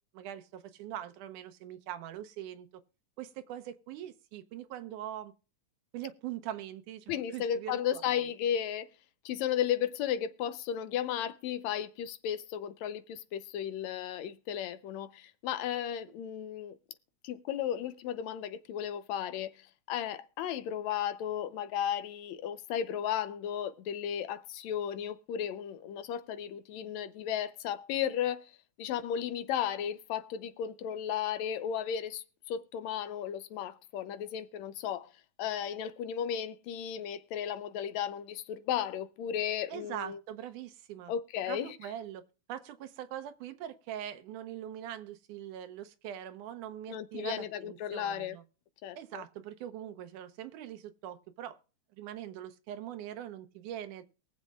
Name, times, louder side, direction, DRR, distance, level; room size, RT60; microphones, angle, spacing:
voice 1, 0.1-2.7 3.2-5.3 5.9-8.2 39.7-41.1 41.5-42.2 42.5-48.4 49.0-51.6 51.9-54.1, right 11 dB, 85° right, 2.4 m, -42 dB
voice 2, 7.1-8.9 9.3-16.8 17.2-28.5 28.8-35.1 35.4-40.2 41.1-41.8 46.9-48.4 48.8-49.2, left 9 dB, 75° left, 1.9 m, -34 dB
22.5 x 7.4 x 2.3 m
omnidirectional pair, 3.5 m